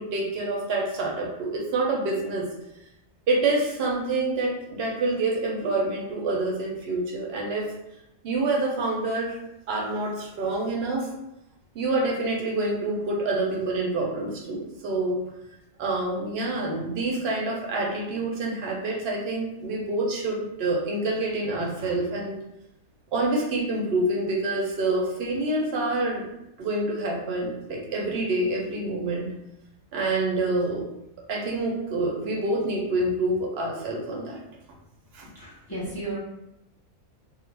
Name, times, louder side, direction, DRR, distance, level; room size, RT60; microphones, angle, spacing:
voice 1, 0.0-2.5 3.3-7.7 8.2-9.4 9.7-11.1 11.7-15.2 15.8-22.3 23.1-26.2 26.6-29.3 29.9-30.9 31.3-34.4 35.1-35.3, right 2 dB, 60° right, -1 dB, 0.7 m, -27 dB
voice 2, 35.3-36.2, right 2 dB, 30° left, -7 dB, 0.4 m, -34 dB
2.4 x 2.1 x 3.1 m, 0.87 s
omnidirectional pair, 1.4 m